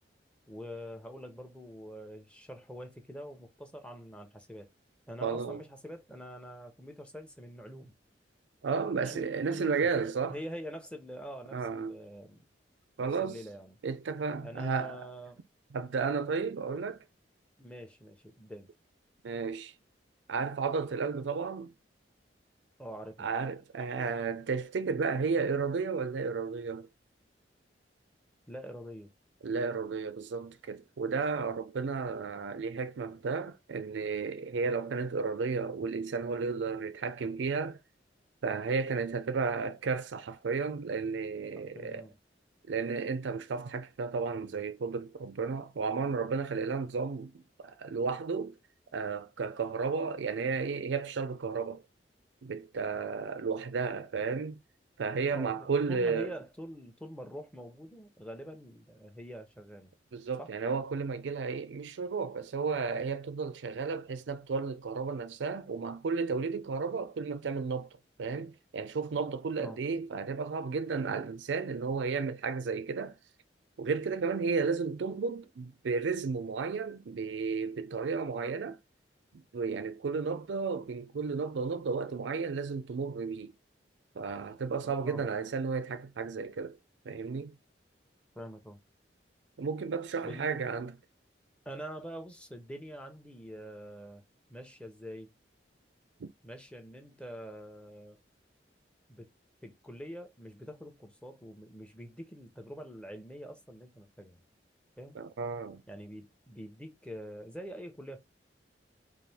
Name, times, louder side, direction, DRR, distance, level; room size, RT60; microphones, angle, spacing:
voice 1, 0.5-4.7 5.1-7.9 8.9-9.9 10.3-12.4 13.0-13.8 14.4-15.4 16.7-16.9 17.6-18.7 22.8-23.3 28.5-29.1 31.3-31.5 41.6-42.2 55.3-59.9 60.4-60.6 69.6-69.8 84.8-85.2 88.4-88.8 90.2-90.6 91.6-94.2 94.5-95.3 96.4-98.2 99.1-99.3 99.6-104.4 105.0-105.2 105.9-108.2, equal, 5° left, 0.8 m, -45 dB
voice 2, 5.2-5.6 8.6-10.4 11.5-12.0 13.0-13.4 13.8-15.0 15.7-17.0 19.2-19.7 20.3-21.7 23.2-26.9 29.4-37.8 38.4-42.1 42.7-47.3 47.6-48.5 48.9-51.8 52.4-54.6 55.0-56.3 60.1-67.9 68.2-73.1 73.8-78.8 79.3-83.5 84.2-86.8 87.1-87.6 89.6-90.9 96.2-96.3 105.2-105.8, right 5 dB, 90° right, 0.5 m, -33 dB
4.2 x 2.6 x 3.4 m
head